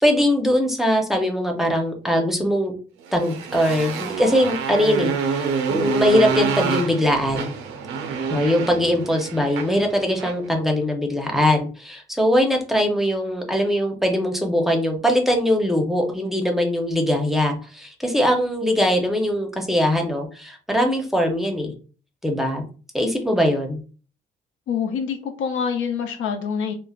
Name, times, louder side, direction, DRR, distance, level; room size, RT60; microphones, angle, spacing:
voice 1, 0.0-2.7 3.1-5.4 5.7-7.5 8.3-21.7 22.2-22.6 22.9-23.8, equal, ahead, 0.6 m, -21 dB
Motorcycle, 3.1-10.5, right 5 dB, 90° right, 0.5 m, -27 dB
voice 2, 24.7-26.7, left 7 dB, 80° left, 0.5 m, -26 dB
3.1 x 2.0 x 2.3 m
cardioid pair, 90°, 20 cm